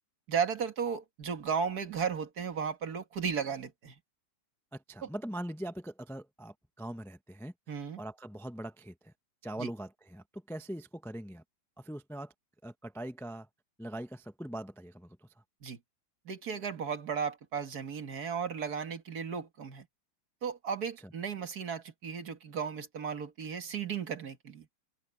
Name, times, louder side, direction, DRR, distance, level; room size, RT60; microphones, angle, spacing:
voice 1, 0.3-4.0 5.0-5.1 7.7-8.0 9.6-9.7 15.6-15.8 16.3-19.9 20.4-24.7, right 6 dB, 55° right, 2.1 m, -35 dB
voice 2, 4.7-7.5 8.0-9.1 9.4-11.4 11.8-12.3 12.6-13.5 13.8-15.3 21.0-21.1, right 1 dB, 5° left, 0.4 m, -41 dB
open air
omnidirectional pair, 2.0 m